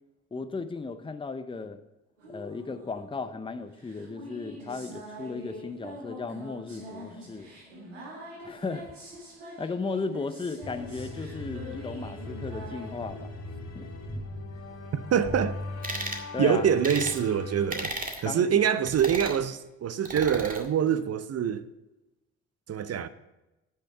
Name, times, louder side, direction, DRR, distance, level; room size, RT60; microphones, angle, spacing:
voice 1, 0.3-1.8 2.3-7.5 8.4-8.9 9.6-13.2 13.7-13.9 16.3-16.7 18.3-18.6, left 4 dB, 15° left, 0.7 m, -35 dB
sound 1, 2.2-12.9, equal, 90° right, 1.8 m, -45 dB
sound 2, 10.6-17.7, left 2 dB, 45° left, 2.4 m, -39 dB
voice 2, 15.1-15.6 16.4-17.9 18.2-21.7 22.7-23.1, right 8 dB, 45° right, 0.7 m, -25 dB
sound 3, 15.8-16.2 16.8-17.2 17.7-18.2 18.9-19.4 20.0-20.6, right 2 dB, 20° right, 2.0 m, -34 dB
9.7 x 6.6 x 5.6 m
hypercardioid pair, 40°, 36 cm